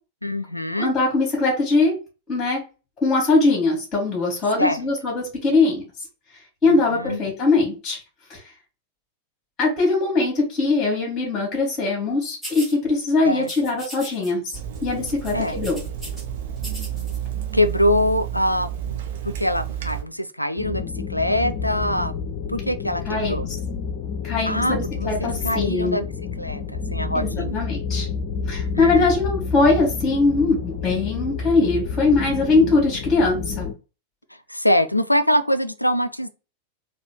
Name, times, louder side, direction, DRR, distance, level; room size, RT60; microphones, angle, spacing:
voice 1, 0.2-0.9 4.6-4.8 6.6-7.2 13.2-13.5 15.3-15.6 17.5-19.0 19.2-22.1 22.5-23.5 24.4-26.1 26.4-27.6 28.7-29.1 34.5-36.3, left 1 dB, 90° left, 0.4 m, -24 dB
voice 2, 0.8-1.9 2.3-2.6 3.0-5.8 6.6-8.0 8.3-8.4 9.6-15.8 23.1-23.6 24.2-26.0 27.2-28.1 28.5-33.7, left 3 dB, 20° left, 2.1 m, -21 dB
sound 1, 12.4-12.8 13.4-14.3 14.6-14.8 15.1-16.2 16.6-17.2, right 1 dB, 5° right, 1.9 m, -38 dB
Water tap faucet / Sink (filling or washing), 14.5-20.0, right 9 dB, 55° right, 0.8 m, -31 dB
sound 2, 20.6-33.7, left 5 dB, 40° left, 0.6 m, -29 dB
4.1 x 2.7 x 3.4 m
figure-of-eight pair, 90°, 0 cm